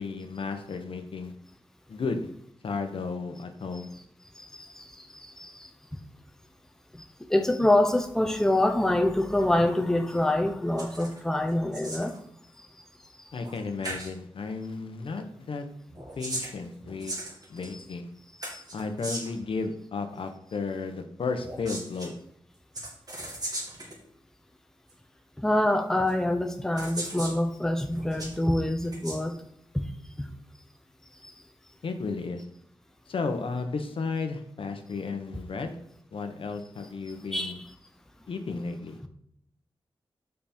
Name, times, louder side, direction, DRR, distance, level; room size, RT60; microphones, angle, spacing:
voice 1, 0.0-1.3 1.9-2.3 2.6-3.9 13.3-15.7 16.2-17.2 17.5-18.1 18.7-22.1 31.8-32.4 33.1-35.7 36.1-37.6 38.3-39.0, left 4 dB, 70° left, 6 dB, 0.9 m, -33 dB
voice 2, 4.4-6.0 6.9-7.0 7.3-12.1 18.5-18.6 25.4-29.4 29.7-29.8 30.2-30.3 31.2-31.3 37.3-37.5, left 1 dB, 5° left, 5 dB, 0.7 m, -26 dB
sound 1, 10.8-11.2 11.5-12.2 13.4-13.6 13.8-14.1 15.9-17.8 18.4-19.4 21.4-22.1 22.7-24.0 24.9-25.0 26.1-26.2 26.8-27.4 27.9-28.4 28.8-29.2, right 1 dB, 45° right, 2.1 m, -37 dB
6.6 x 5.7 x 4.3 m, 0.71 s
wide cardioid pair, 90°, 9 cm